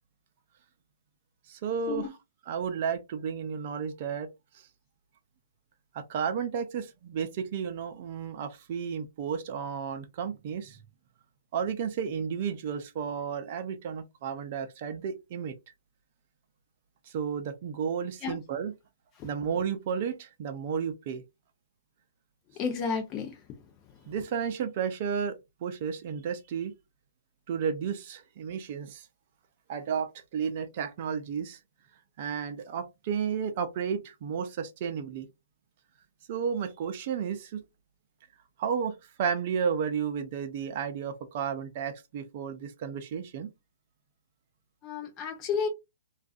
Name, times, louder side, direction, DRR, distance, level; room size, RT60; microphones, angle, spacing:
voice 1, 1.5-2.2 2.5-4.3 4.5-4.7 5.9-10.8 11.5-15.6 17.1-18.7 19.2-21.2 24.1-26.7 27.5-29.1 29.7-31.6 32.2-35.3 36.3-37.6 38.6-43.5, right 7 dB, 45° right, 0.5 m, -32 dB
voice 2, 22.6-23.3 44.8-45.7, left 6 dB, 30° left, 0.7 m, -31 dB
2.5 x 2.3 x 2.4 m
hypercardioid pair, 130°, 0 cm